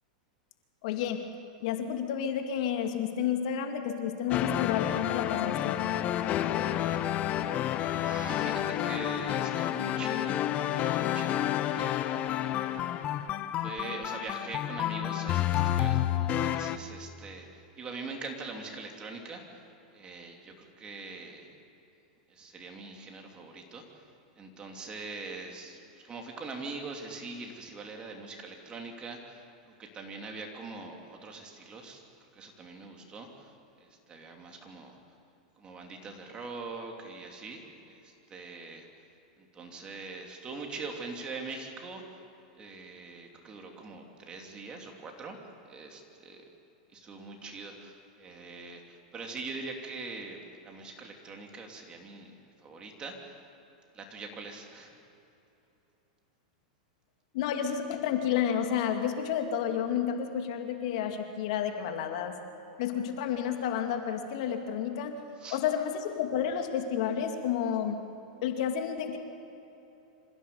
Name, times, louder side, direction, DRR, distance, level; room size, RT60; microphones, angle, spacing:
voice 1, 0.8-1.3 1.6-5.8 57.3-62.3 62.8-65.2 65.5-68.0 68.4-69.2, left 8 dB, 60° left, 5 dB, 2.4 m, -30 dB
sound 1, 4.3-16.8, left 11 dB, 35° left, 0.9 m, -30 dB
voice 2, 7.3-10.4 10.7-12.2 13.6-19.6 19.9-21.5 22.3-24.0 24.4-32.0 32.3-33.5 33.8-35.0 35.6-38.9 39.4-42.0 42.6-45.4 45.7-46.4 46.9-52.3 52.6-53.4 53.9-54.9 65.4-65.6, right 3 dB, 25° right, 2 dB, 3.1 m, -43 dB
26.5 x 15.5 x 7.1 m, 2.9 s
hypercardioid pair, 125°, 4 cm